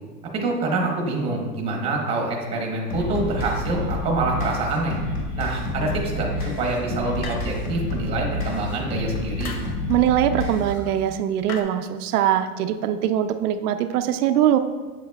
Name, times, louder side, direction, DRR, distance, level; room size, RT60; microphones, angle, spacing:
voice 1, 0.3-5.0 5.4-9.6, right 2 dB, 15° right, 0 dB, 0.9 m, -26 dB
sound 1, 2.9-10.9, left 2 dB, 30° left, 1.7 m, -29 dB
sound 2, 7.2-7.8 9.4-9.8 11.5-11.6, left 5 dB, 70° left, 1.1 m, -36 dB
voice 2, 9.9-14.6, right 11 dB, 75° right, 8 dB, 0.5 m, -22 dB
7.8 x 7.4 x 2.3 m, 1.4 s
supercardioid pair, 165°, 45 cm